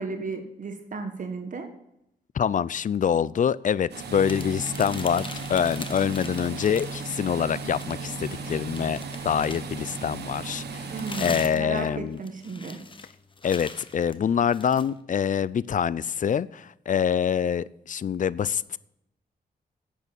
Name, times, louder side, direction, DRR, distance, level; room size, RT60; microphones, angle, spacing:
voice 1, 0.0-1.7 10.9-12.8, right 4 dB, 50° right, 6 dB, 1.4 m, -34 dB
voice 2, 2.3-10.9 11.2-12.2 13.4-18.8, left 8 dB, 50° left, 20 dB, 0.5 m, -25 dB
sound 1, 3.9-11.5, right 4 dB, 90° right, 1.4 m, -36 dB
sound 2, 4.2-7.1 7.5-9.8 10.5-14.9, left 3 dB, 30° left, 1.0 m, -42 dB
11.0 x 8.2 x 7.0 m, 0.81 s
cardioid pair, 95°, 17 cm